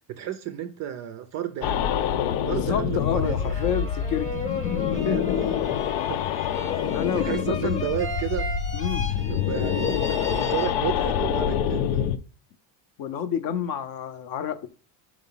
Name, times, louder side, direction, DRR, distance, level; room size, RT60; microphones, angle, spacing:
voice 1, 0.1-1.9 2.5-3.7 5.1-5.8 6.1-6.2 7.1-8.5 9.3-12.1, right 10 dB, 35° right, 0.4 m, -32 dB
sound 1, 1.6-12.2, left 9 dB, 90° left, 0.7 m, -26 dB
voice 2, 2.5-4.3 5.0-5.3 6.9-7.9 8.7-9.1 13.0-14.7, left 8 dB, 45° left, 0.6 m, -29 dB
sound 2, 3.0-11.2, left 2 dB, 15° left, 0.8 m, -35 dB
5.0 x 4.9 x 5.5 m
cardioid pair, 170°, 50 cm